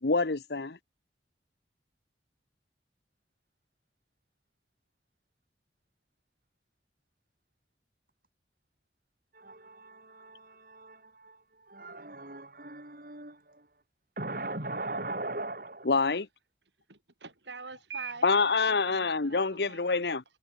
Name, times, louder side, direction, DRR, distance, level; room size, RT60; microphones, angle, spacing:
voice 1, 0.0-0.8 15.9-16.3 18.2-20.2, left 4 dB, 70° left, 1.0 m, -26 dB
voice 2, 9.3-13.8 14.2-16.0, right 2 dB, 50° right, 5.4 m, -40 dB
voice 3, 16.9-19.8, right 5 dB, 85° right, 5.7 m, -44 dB
head